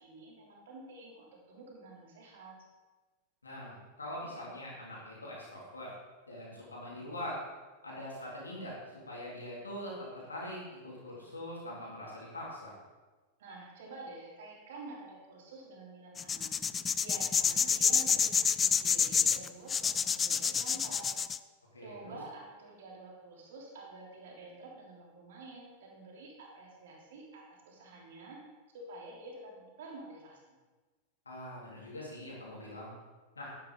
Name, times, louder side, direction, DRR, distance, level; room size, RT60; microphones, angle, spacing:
voice 1, 0.0-2.6 13.4-16.5 17.0-21.2 21.8-28.4 28.7-30.4, right 2 dB, 55° right, -1 dB, 3.3 m, -49 dB
voice 2, 3.4-5.9 6.3-7.4 7.8-8.8 9.1-12.7 21.7-22.2 31.3-32.9 33.4-33.5, left 1 dB, 75° left, -5 dB, 3.8 m, -43 dB
sound 1, 16.2-21.4, left 6 dB, 20° left, 0.4 m, -28 dB
12.0 x 11.5 x 4.0 m, 1.3 s
figure-of-eight pair, 90°, 0 cm